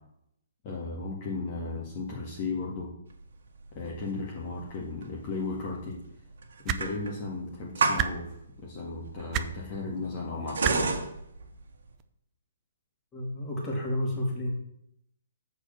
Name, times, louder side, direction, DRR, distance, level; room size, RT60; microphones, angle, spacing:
voice 1, 0.6-2.9 3.7-6.0 6.6-8.3 8.6-11.0, left 3 dB, 35° left, -3 dB, 1.7 m, -35 dB
sound 1, 3.1-11.9, right 4 dB, 70° right, 1.6 m, -33 dB
sound 2, 6.7-6.8 8.0-8.1 9.3-9.5 10.6-10.8 12.0-12.1, right 10 dB, 25° right, 0.5 m, -28 dB
voice 2, 13.1-14.5, left 1 dB, 15° left, -2 dB, 2.4 m, -31 dB
6.7 x 4.6 x 6.7 m, 0.74 s
hypercardioid pair, 150°, 0 cm